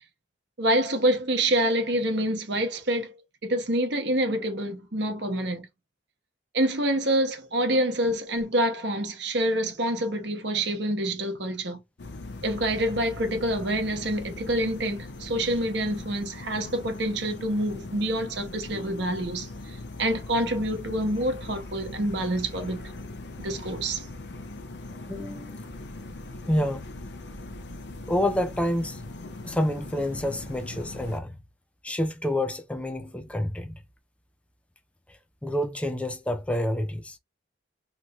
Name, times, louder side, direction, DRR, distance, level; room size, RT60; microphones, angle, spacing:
voice 1, 0.6-3.1 3.4-5.7 6.5-11.8 12.4-19.5 20.0-22.8 23.4-24.0, right 1 dB, 60° right, 0.9 m, -27 dB
sound 1, 12.0-31.2, left 2 dB, 55° left, 0.5 m, -40 dB
voice 2, 25.1-25.6 26.4-26.8 28.1-29.0 29.4-31.3 31.8-33.7 35.4-37.2, left 1 dB, 5° left, 0.4 m, -28 dB
3.0 x 2.5 x 3.0 m
head